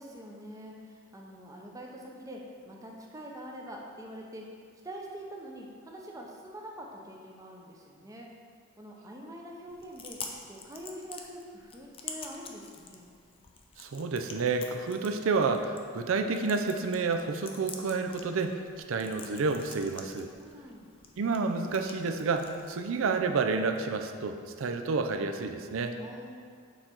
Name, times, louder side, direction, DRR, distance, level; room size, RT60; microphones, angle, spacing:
voice 1, 0.0-4.4 4.8-8.3 8.8-10.2 10.5-13.1 20.4-21.0 26.0-26.3, equal, 15° right, -1 dB, 0.7 m, -45 dB
Chewing mastication, 9.7-23.7, left 5 dB, 25° left, 0.5 m, -48 dB
voice 2, 13.8-18.6 18.9-20.3 21.2-25.9, right 4 dB, 70° right, 7 dB, 0.4 m, -30 dB
6.6 x 3.9 x 4.4 m, 2.1 s
head